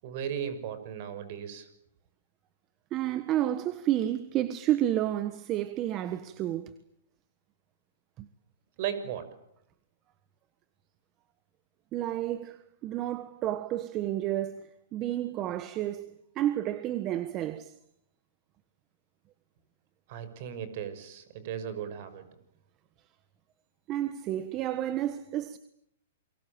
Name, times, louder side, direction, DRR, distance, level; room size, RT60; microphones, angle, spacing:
voice 1, 0.0-1.7 8.8-9.4 20.1-22.3, right 9 dB, 50° right, 6.1 m, -36 dB
voice 2, 2.9-6.7 8.2-8.3 11.9-12.6 12.8-17.7 23.9-25.6, right 12 dB, 30° right, 1.4 m, -31 dB
29.0 x 23.5 x 8.8 m
hypercardioid pair, 140°, 0 cm